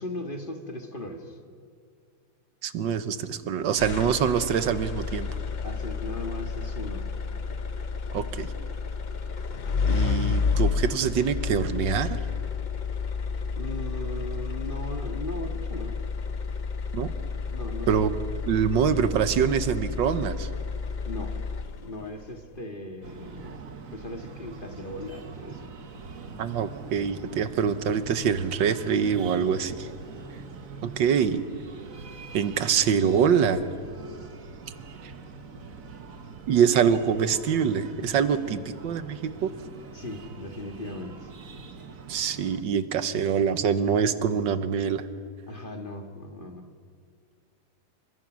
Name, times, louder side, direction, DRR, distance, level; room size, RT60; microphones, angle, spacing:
voice 1, 0.0-1.4 5.6-7.1 13.5-16.0 17.5-18.1 21.0-21.5 21.8-23.6 23.9-25.7 38.4-38.6 39.9-41.3 45.5-46.7, left 1 dB, 30° left, 4 dB, 1.8 m, -38 dB
voice 2, 2.6-5.3 8.1-8.5 9.9-12.2 16.9-17.1 17.9-18.1 18.4-20.5 26.4-29.9 30.8-31.4 32.3-33.6 35.0-35.1 36.5-39.5 42.1-45.0, right 7 dB, 90° right, 11 dB, 1.7 m, -25 dB
sound 1, 3.8-22.0, left 5 dB, 70° left, 0.4 m, -31 dB
Breathing, 23.0-42.6, right 4 dB, 50° right, 1.7 m, -43 dB
29.0 x 24.5 x 6.3 m, 2.2 s
omnidirectional pair, 1.9 m